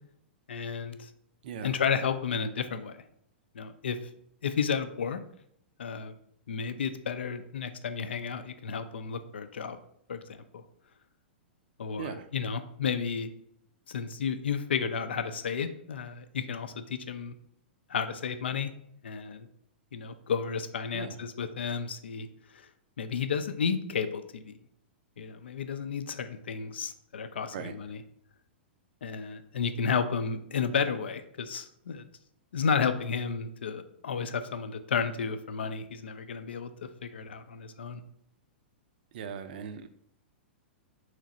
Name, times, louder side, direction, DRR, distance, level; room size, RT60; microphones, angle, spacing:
voice 1, 0.5-1.1 1.6-3.0 3.5-4.0 4.4-5.2 5.8-6.2 6.5-9.8 10.1-10.6 11.8-13.3 13.9-17.3 17.9-18.7 19.0-19.5 19.9-22.3 22.5-22.7 23.0-24.6 25.2-28.0 29.0-32.1 32.5-36.7 37.0-38.0, left 6 dB, 75° left, 10 dB, 0.4 m, -32 dB
voice 2, 39.1-39.9, right 7 dB, 55° right, 9 dB, 0.4 m, -39 dB
3.3 x 3.1 x 3.8 m, 0.70 s
figure-of-eight pair, 105°, 6 cm